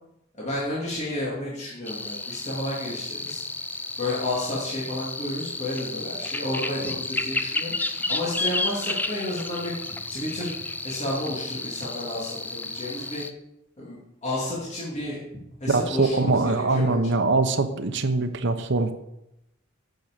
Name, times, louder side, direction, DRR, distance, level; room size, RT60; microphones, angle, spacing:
voice 1, 0.3-3.4 4.0-9.7 10.1-10.5 10.8-13.2 13.8-15.2 15.6-16.9, left 1 dB, 35° left, -7 dB, 2.6 m, -31 dB
sound 1, 1.9-13.3, left 2 dB, 10° left, 0.6 m, -32 dB
voice 2, 15.7-18.9, right 3 dB, 65° right, 7 dB, 0.9 m, -23 dB
9.1 x 6.4 x 6.8 m, 0.86 s
head